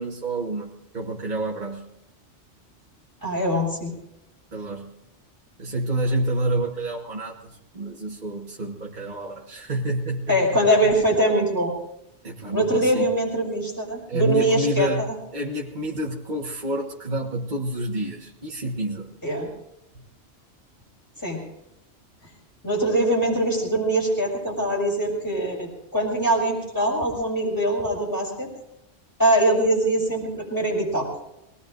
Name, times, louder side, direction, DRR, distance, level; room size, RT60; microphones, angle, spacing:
voice 1, 0.0-1.9 4.5-4.9 5.6-10.6 10.8-10.9 12.2-13.0 14.1-19.1 19.9-20.0, right 1 dB, 40° right, -2 dB, 1.6 m, -28 dB
voice 2, 3.2-3.9 10.3-11.7 12.5-14.9 19.2-19.5 21.2-21.4 22.6-28.5 29.2-31.1, right 1 dB, 15° left, -1 dB, 5.9 m, -22 dB
24.0 x 20.0 x 2.6 m, 0.88 s
omnidirectional pair, 1.2 m